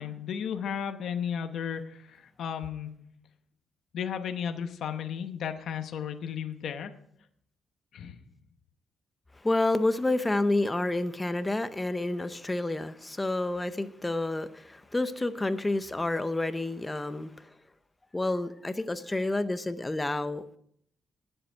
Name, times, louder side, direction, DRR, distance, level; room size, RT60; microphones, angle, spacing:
voice 1, 0.0-3.0 3.9-6.9 7.9-8.2, left 8 dB, 60° left, 7 dB, 0.9 m, -34 dB
voice 2, 9.4-17.3 18.1-20.4, left 2 dB, 10° left, 12 dB, 0.6 m, -29 dB
18.5 x 7.9 x 4.5 m, 0.67 s
cardioid pair, 175°, 0 cm